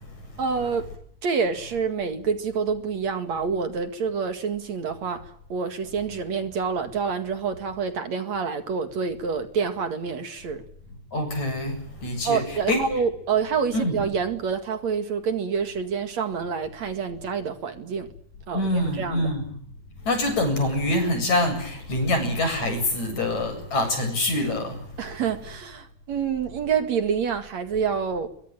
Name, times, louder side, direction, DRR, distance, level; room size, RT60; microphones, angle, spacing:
voice 1, 0.4-0.9 1.2-10.6 12.2-18.1 18.5-19.3 25.0-28.3, right 6 dB, 55° right, 3.1 m, -27 dB
voice 2, 11.1-12.4 12.7-12.9 13.7-14.0 18.5-19.5 20.0-24.8, left 1 dB, 55° left, 9.2 m, -25 dB
23.5 x 23.5 x 9.0 m
omnidirectional pair, 3.8 m